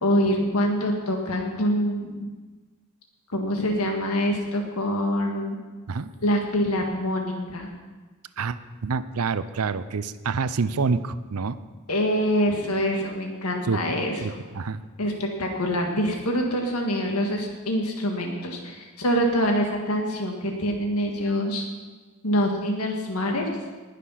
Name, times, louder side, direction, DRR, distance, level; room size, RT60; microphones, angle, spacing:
voice 1, 0.0-2.3 3.3-5.6 6.2-7.7 11.9-14.4 15.0-21.7 22.2-23.5, equal, 85° left, 1 dB, 1.7 m, -25 dB
voice 2, 8.4-11.6 13.6-13.8 14.2-14.8, right 4 dB, 85° right, 14 dB, 0.6 m, -27 dB
19.0 x 6.7 x 5.7 m, 1.3 s
head